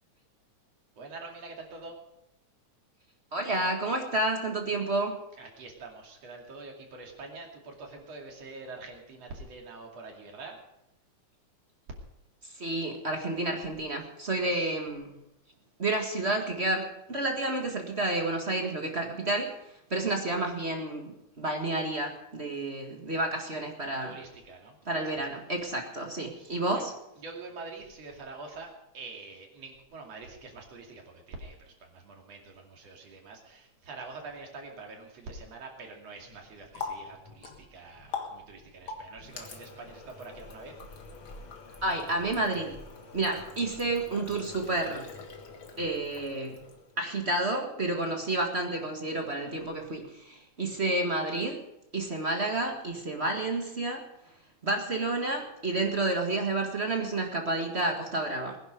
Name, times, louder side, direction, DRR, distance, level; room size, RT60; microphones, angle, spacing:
voice 1, 1.0-2.0 5.4-10.6 14.4-14.7 24.0-25.0 26.4-26.8 27.2-40.8, right 3 dB, 60° right, 1 dB, 3.6 m, -45 dB
voice 2, 3.3-5.2 12.6-15.1 15.8-19.6 19.9-24.1 24.9-26.9 41.8-42.8 43.1-45.1 45.8-46.6 47.0-51.6 51.9-54.0 54.6-58.6, right 2 dB, 30° right, 2 dB, 1.3 m, -30 dB
Water tap faucet, 36.2-47.0, left 4 dB, 45° left, 2.2 m, -44 dB
20.5 x 10.5 x 5.1 m, 0.85 s
omnidirectional pair, 3.4 m